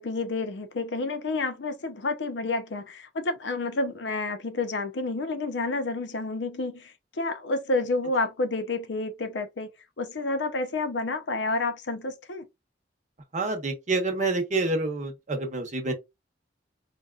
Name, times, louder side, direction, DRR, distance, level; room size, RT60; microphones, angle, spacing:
voice 1, 0.0-9.7 10.0-12.5, left 3 dB, 80° left, 0.6 m, -29 dB
voice 2, 13.3-15.9, right 3 dB, 45° right, 0.9 m, -27 dB
4.0 x 2.2 x 2.3 m
head